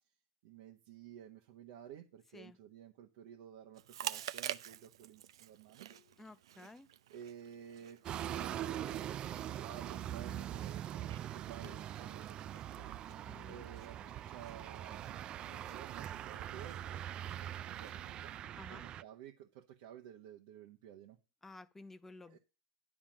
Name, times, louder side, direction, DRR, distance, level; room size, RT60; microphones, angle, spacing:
voice 1, 0.4-5.9 7.1-16.8 17.4-21.2 22.3-22.4, right 9 dB, 65° right, 1.2 m, -53 dB
Chewing mastication, 3.7-18.4, right 11 dB, 80° right, 0.6 m, -50 dB
sound 1, 5.9-6.4 7.7-8.1 8.9-9.5 10.3-10.8 11.6-12.1 12.8-14.4 15.5-15.9 17.3-17.6, left 17 dB, 70° left, 1.2 m, -65 dB
voice 2, 6.2-6.9 13.2-13.6 18.6-18.8 21.4-22.4, left 2 dB, 10° left, 0.6 m, -53 dB
sound 2, 8.0-19.0, right 11 dB, 35° right, 0.4 m, -42 dB
11.0 x 3.7 x 7.4 m
hypercardioid pair, 120°, 3 cm